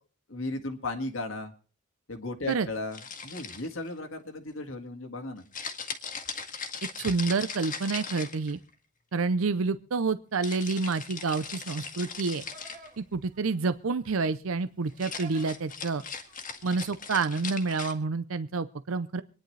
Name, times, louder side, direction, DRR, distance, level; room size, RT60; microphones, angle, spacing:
voice 1, 0.3-1.5 2.1-5.4, left 2 dB, 65° left, 5 dB, 1.9 m, -35 dB
sound 1, 2.9-3.9 5.5-8.7 10.4-12.9 14.9-17.9, left 5 dB, 40° left, 1.8 m, -39 dB
voice 2, 6.8-8.6 9.1-12.4 13.0-16.0 16.6-19.2, right 4 dB, 70° right, 13 dB, 0.6 m, -28 dB
Livestock farm animals working animals, 11.6-16.8, right 3 dB, 40° right, 2.0 m, -54 dB
25.5 x 10.5 x 3.3 m, 0.41 s
head